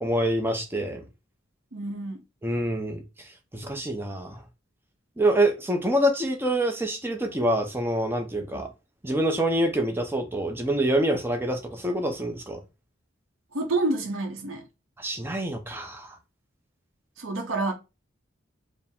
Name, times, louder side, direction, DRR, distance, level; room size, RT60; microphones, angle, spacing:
voice 1, 0.0-1.0 2.4-4.4 5.2-8.7 9.0-12.6 15.0-16.2, right 1 dB, 10° right, 0.6 m, -26 dB
voice 2, 1.7-2.2 8.5-8.6 13.5-14.6 17.2-17.7, right 2 dB, 85° right, 0.8 m, -28 dB
4.5 x 2.1 x 3.6 m
head